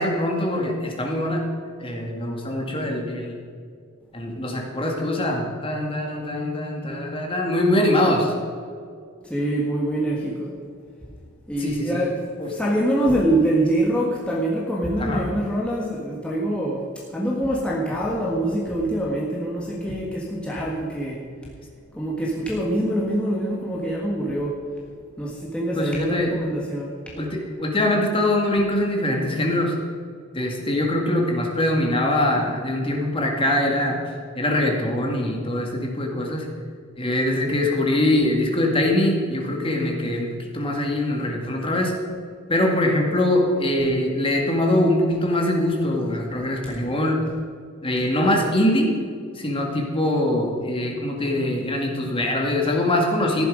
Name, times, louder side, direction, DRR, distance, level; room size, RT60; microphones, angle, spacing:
voice 1, 0.0-1.4 1.8-3.4 4.1-8.3 11.6-12.0 12.4-12.5 15.0-15.2 25.7-26.3 27.1-29.8 30.3-34.0 34.4-36.5 37.0-41.9 42.5-47.2 47.8-48.9 49.4-53.4, left 1 dB, 25° left, 1 dB, 2.1 m, -23 dB
voice 2, 9.2-10.6 11.5-21.5 21.9-24.7 25.2-27.2, right 1 dB, 5° left, -4 dB, 1.6 m, -25 dB
15.0 x 11.0 x 5.1 m, 2.2 s
head